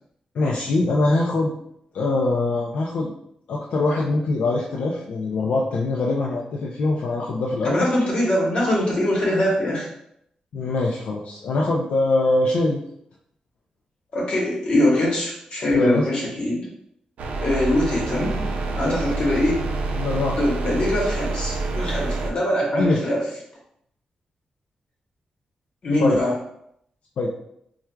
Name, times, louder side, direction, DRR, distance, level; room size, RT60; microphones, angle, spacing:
voice 1, 0.3-1.5 1.9-3.1 3.5-7.9 10.5-12.8 15.7-16.0 18.8-19.0 19.9-20.4 22.7-23.0 26.0-26.2 27.2-27.3, left 2 dB, 75° left, -2 dB, 0.4 m, -23 dB
voice 2, 7.6-9.9 14.1-16.7 17.4-18.3 18.7-19.6 20.3-23.2 25.8-26.3, left 1 dB, 50° left, -4 dB, 1.1 m, -22 dB
sound 1, 17.2-22.3, right 3 dB, 90° right, 0.4 m, -27 dB
4.4 x 2.3 x 2.2 m, 0.74 s
wide cardioid pair, 180°, 2 cm